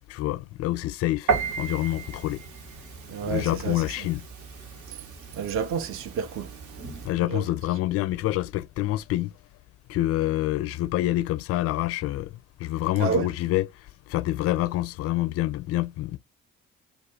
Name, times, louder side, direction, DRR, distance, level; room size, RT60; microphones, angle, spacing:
voice 1, 0.1-1.3 1.6-2.4 3.2-4.2 7.0-9.3 9.9-13.6 14.1-16.2, left 16 dB, 40° left, 0.4 m, -27 dB
Piano, 1.3-7.1, right 5 dB, 60° right, 0.9 m, -34 dB
voice 2, 3.1-4.1 4.9-5.1 5.3-7.4 13.0-13.3, right 6 dB, 35° right, 0.5 m, -31 dB
2.3 x 2.2 x 2.9 m
figure-of-eight pair, 45°, 39 cm